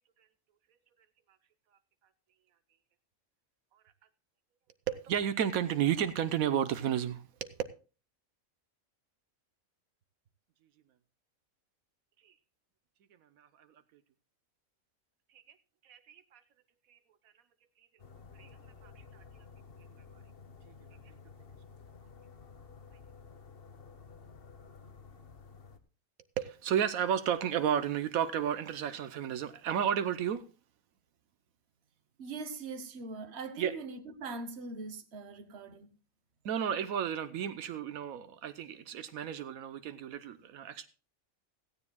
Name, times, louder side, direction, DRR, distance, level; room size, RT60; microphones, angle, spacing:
voice 1, 4.9-7.5 12.2-12.3 13.4-13.7 15.8-16.4 16.9-17.0 18.4-18.5 18.8-19.2 20.7-20.8 21.1-21.2 26.4-30.4 33.6-33.7 36.4-40.9, right 9 dB, 85° right, 1.2 m, -32 dB
sound 1, 18.0-25.8, left 5 dB, 45° left, 1.3 m, -53 dB
voice 2, 32.2-35.9, right 3 dB, 55° right, 1.4 m, -41 dB
16.5 x 15.0 x 2.2 m
omnidirectional pair, 1.4 m